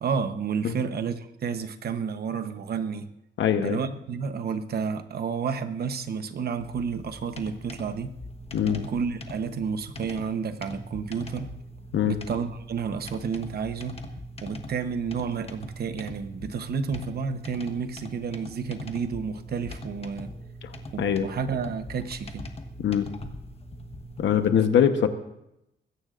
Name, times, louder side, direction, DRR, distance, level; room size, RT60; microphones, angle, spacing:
voice 1, 0.0-3.1 3.6-8.1 8.6-11.5 12.1-14.0 14.4-20.3 20.9-22.5, right 6 dB, 55° right, 9 dB, 1.0 m, -31 dB
voice 2, 3.4-3.8 8.5-8.8 11.9-12.1 21.0-21.3 22.8-23.1 24.2-25.1, left 9 dB, 75° left, 8 dB, 1.1 m, -22 dB
sound 1, 6.6-24.5, equal, 30° left, 1.3 m, -42 dB
21.0 x 16.5 x 2.5 m, 0.85 s
cardioid pair, 140°, 20 cm